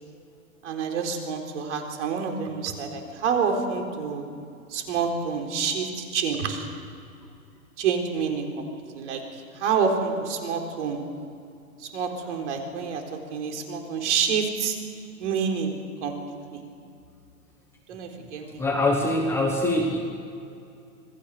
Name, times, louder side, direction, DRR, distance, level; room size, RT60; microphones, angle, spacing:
voice 1, 0.6-4.3 4.7-6.7 7.8-8.6 8.9-11.0 11.8-14.8 15.2-15.7 16.0-16.6 17.9-18.6, right 6 dB, 55° right, 3 dB, 4.1 m, -28 dB
voice 2, 18.6-20.0, left 1 dB, 5° left, 0 dB, 1.2 m, -24 dB
27.0 x 19.5 x 6.7 m, 2.5 s
hypercardioid pair, 165°, 43 cm